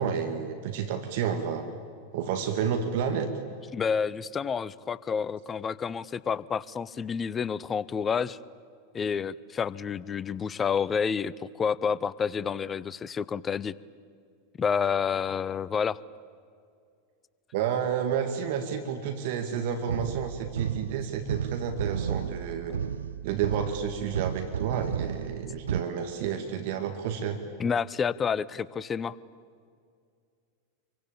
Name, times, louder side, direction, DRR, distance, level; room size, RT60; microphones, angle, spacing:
voice 1, 0.0-1.7 2.1-3.3 17.5-22.8 23.2-27.4, right 7 dB, 55° right, 6 dB, 2.1 m, -30 dB
voice 2, 3.7-8.4 8.9-13.8 14.6-16.0 27.6-29.2, left 6 dB, 25° left, 20 dB, 0.7 m, -29 dB
sound 1, 19.9-25.8, right 8 dB, 70° right, 0.6 m, -33 dB
27.0 x 24.0 x 8.8 m, 2.2 s
figure-of-eight pair, 90°, 0 cm